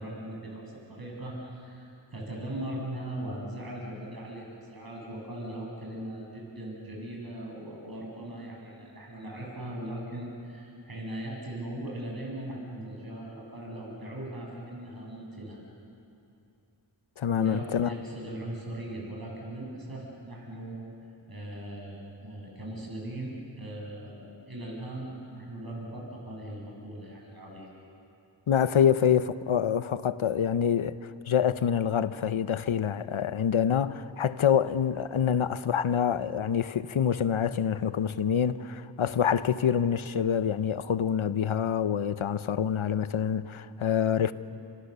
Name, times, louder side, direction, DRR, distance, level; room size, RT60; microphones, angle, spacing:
voice 1, 0.0-15.6 17.3-20.8 21.3-27.7, right 1 dB, 50° right, 7.4 m, -39 dB
voice 2, 17.2-17.9 28.5-44.3, left 8 dB, 85° left, 0.8 m, -26 dB
28.5 x 27.0 x 6.8 m
cardioid pair, 45°, 47 cm